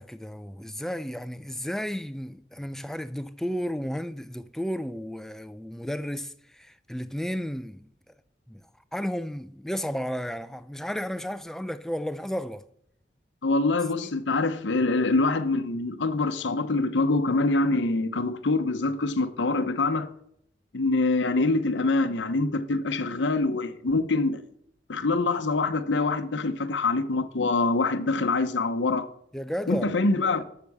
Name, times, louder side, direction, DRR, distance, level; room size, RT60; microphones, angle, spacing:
voice 1, 0.0-7.9 8.5-12.6 14.0-14.1 29.3-29.9, equal, ahead, 0.3 m, -33 dB
voice 2, 13.4-20.1 20.7-24.4 24.9-29.1 29.7-30.4, left 3 dB, 75° left, 0.8 m, -25 dB
8.1 x 6.6 x 7.2 m
head